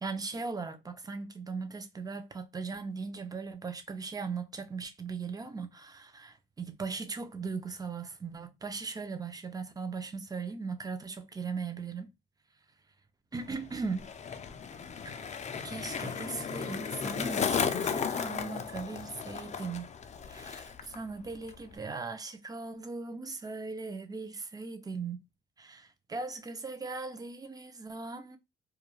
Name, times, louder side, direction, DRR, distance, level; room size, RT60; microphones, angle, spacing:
voice 1, 0.0-12.1 13.3-14.1 15.0-19.9 20.3-25.2 25.6-28.4, right 4 dB, 20° right, 0.5 m, -39 dB
Skateboard, 13.4-21.0 21.2-21.7, left 6 dB, 35° left, 0.4 m, -35 dB
2.3 x 2.2 x 3.1 m
cardioid pair, 90°, 20 cm